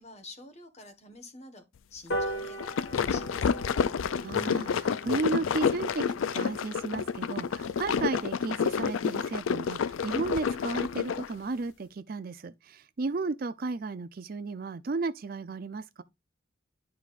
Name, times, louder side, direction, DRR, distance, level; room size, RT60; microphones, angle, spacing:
voice 1, 0.0-1.6 1.9-3.8, left 2 dB, 35° left, 1.3 m, -48 dB
sound 1, 2.1-8.8 9.3-9.4 9.7-9.8 10.1-10.2 10.5-10.6 10.8-11.1 11.5-11.6, right 1 dB, 60° left, 1.5 m, -40 dB
sound 2, 2.4-11.3, left 6 dB, 80° left, 0.4 m, -29 dB
voice 2, 4.2-6.0 6.3-16.0, right 3 dB, 45° right, 0.4 m, -34 dB
11.0 x 4.7 x 2.5 m
head